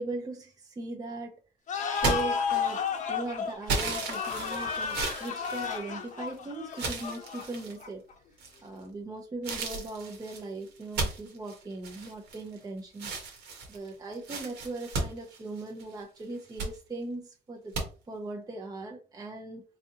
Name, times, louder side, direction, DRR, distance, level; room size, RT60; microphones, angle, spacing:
voice 1, 0.0-1.4 1.9-8.0 8.6-13.1 13.7-17.8 18.1-19.6, right 2 dB, 20° right, 0.7 m, -39 dB
sound 1, 1.7-8.1, left 6 dB, 45° left, 0.8 m, -33 dB
sound 2, 2.0-3.0 3.7-6.3 6.7-7.8 8.4-8.8 9.4-12.6 12.9-15.9 16.3-16.7 17.7-17.9, right 3 dB, 90° right, 1.5 m, -35 dB
sound 3, 7.1-9.8, right 8 dB, 60° right, 0.7 m, -48 dB
4.0 x 3.6 x 2.8 m
cardioid pair, 110°, 17 cm